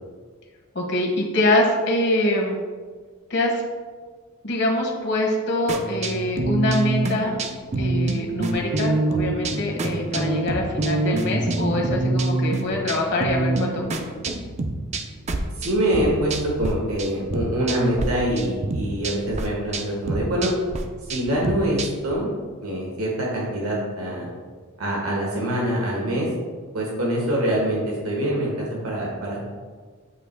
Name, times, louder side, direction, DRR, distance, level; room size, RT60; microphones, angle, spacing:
voice 1, 0.7-2.6 3.3-3.6 4.4-7.4 7.8-14.1, left 1 dB, 55° left, 0 dB, 1.3 m, -24 dB
sound 1, 5.7-16.7 17.0-18.1 18.4-22.1, right 2 dB, 30° right, 0.5 m, -26 dB
voice 2, 15.6-20.5 21.1-22.3 22.6-24.3 24.8-26.3 26.7-29.5, right 1 dB, 85° right, -3 dB, 1.6 m, -25 dB
8.4 x 3.0 x 4.6 m, 1.5 s
head